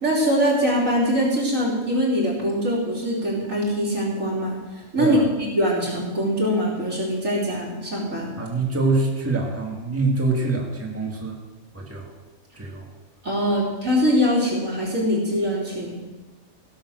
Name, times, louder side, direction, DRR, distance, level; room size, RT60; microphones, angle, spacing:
voice 1, 0.0-8.3 13.2-16.0, equal, 75° right, -4 dB, 3.8 m, -23 dB
voice 2, 8.4-11.4 11.7-12.1 12.5-12.9, right 3 dB, 10° right, -1 dB, 1.9 m, -25 dB
16.5 x 7.2 x 6.4 m, 1.2 s
omnidirectional pair, 1.4 m